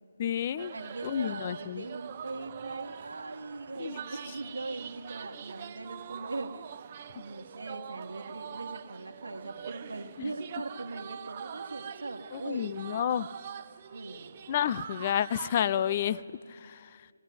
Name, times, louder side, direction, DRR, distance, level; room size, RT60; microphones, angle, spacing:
voice 1, 0.2-0.7 1.0-1.9 3.8-4.3 7.1-7.2 10.2-10.3 12.3-13.3 14.5-16.2 16.5-17.1, left 10 dB, 30° left, 17 dB, 0.4 m, -31 dB
sound 1, 0.6-16.2, right 8 dB, 35° right, 0.6 m, -44 dB
voice 2, 0.7-6.7 7.1-12.9 13.9-14.3, right 2 dB, 80° right, 5 dB, 1.3 m, -40 dB
19.5 x 17.0 x 9.4 m, 2.3 s
figure-of-eight pair, 160°, 0 cm